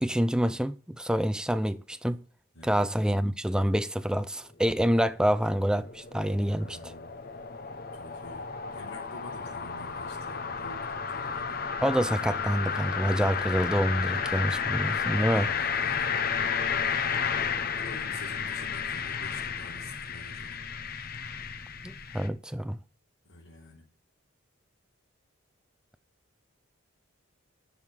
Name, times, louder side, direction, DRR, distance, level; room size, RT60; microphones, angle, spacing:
voice 1, 0.0-2.2 2.6-6.9 11.8-15.5 21.8-22.8, equal, 5° right, 0.5 m, -27 dB
sound 1, 4.8-22.3, left 6 dB, 45° left, 0.9 m, -32 dB
voice 2, 6.6-7.2 8.0-11.6 15.3-16.1 17.7-20.6 23.3-23.9, left 2 dB, 80° left, 3.6 m, -48 dB
11.0 x 6.6 x 7.0 m
head